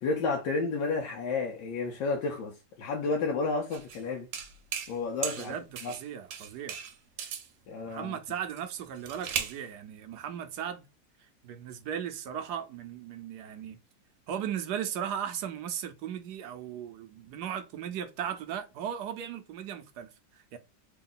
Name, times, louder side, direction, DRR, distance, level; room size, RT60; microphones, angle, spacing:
voice 1, 0.0-4.3 4.9-5.5 5.8-5.9 7.7-8.1, left 3 dB, 80° left, 1.4 m, -31 dB
sound 1, 3.7-4.0 4.3-5.0 5.2-6.0 6.3-7.5 8.5-9.6, right 8 dB, 85° right, 1.4 m, -36 dB
voice 2, 5.2-6.8 7.8-10.8 11.2-13.8 14.3-20.6, right 9 dB, 70° right, 1.1 m, -37 dB
3.6 x 2.3 x 3.7 m
omnidirectional pair, 2.0 m